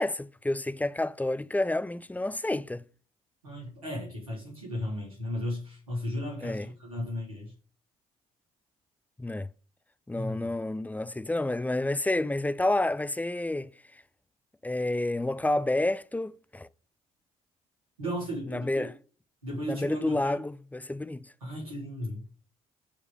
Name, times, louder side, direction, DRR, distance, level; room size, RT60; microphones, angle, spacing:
voice 1, 0.0-2.8 6.4-6.7 9.2-9.5 10.1-13.7 14.6-16.7 18.5-18.9 19.7-21.3, left 2 dB, 10° left, 0.7 m, -29 dB
voice 2, 3.4-7.5 10.1-10.5 18.0-18.8 19.4-20.4 21.4-22.2, equal, 80° right, 4.0 m, -35 dB
11.5 x 5.0 x 5.2 m
figure-of-eight pair, 45°, 18 cm